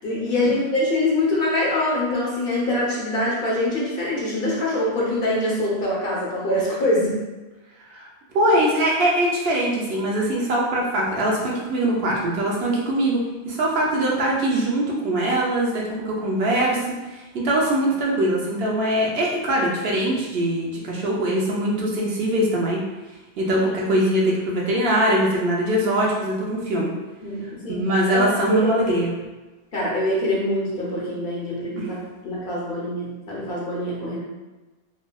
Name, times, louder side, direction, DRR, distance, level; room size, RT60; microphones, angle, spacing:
voice 1, 0.0-7.2 27.2-27.8 28.1-29.0 29.7-32.0 32.2-34.2, left 1 dB, 60° left, -5 dB, 1.0 m, -24 dB
voice 2, 8.3-16.8 17.1-22.8 23.4-26.9 27.7-29.1 31.8-31.9, right 1 dB, 70° right, -3 dB, 0.8 m, -22 dB
3.1 x 2.5 x 2.2 m, 1.1 s
omnidirectional pair, 1.1 m